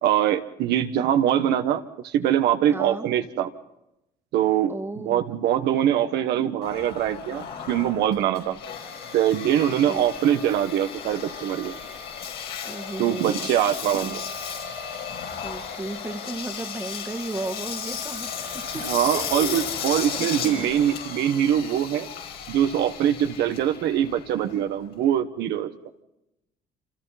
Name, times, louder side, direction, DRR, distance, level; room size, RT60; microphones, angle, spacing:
voice 1, 0.0-3.5 4.3-4.7 5.0-8.6 9.1-11.7 13.0-14.2 18.8-22.1 22.5-25.7, right 10 dB, 80° right, 7 dB, 1.4 m, -23 dB
voice 2, 2.7-3.1 4.7-5.3 9.8-10.0 12.6-14.2 15.4-18.8 19.1-19.7 20.1-20.7, right 2 dB, 15° right, 7 dB, 1.8 m, -35 dB
Engine, 6.6-25.0, left 7 dB, 75° left, 5.3 m, -35 dB
27.5 x 27.0 x 4.2 m, 0.89 s
cardioid pair, 110°, 17 cm